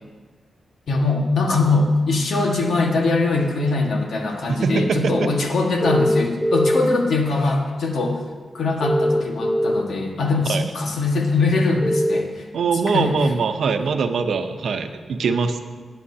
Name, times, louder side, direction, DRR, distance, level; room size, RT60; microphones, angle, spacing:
voice 1, 0.9-8.2 8.5-12.5 12.9-13.1, left 3 dB, 75° left, 0 dB, 1.7 m, -21 dB
voice 2, 4.5-5.0 10.5-10.6 12.5-15.6, right 5 dB, 70° right, 7 dB, 0.8 m, -22 dB
sound 1, 5.8-6.8 8.8-9.8 11.8-12.2, equal, ahead, 0.4 m, -20 dB
18.5 x 8.9 x 2.8 m, 1.5 s
wide cardioid pair, 145°, 0 cm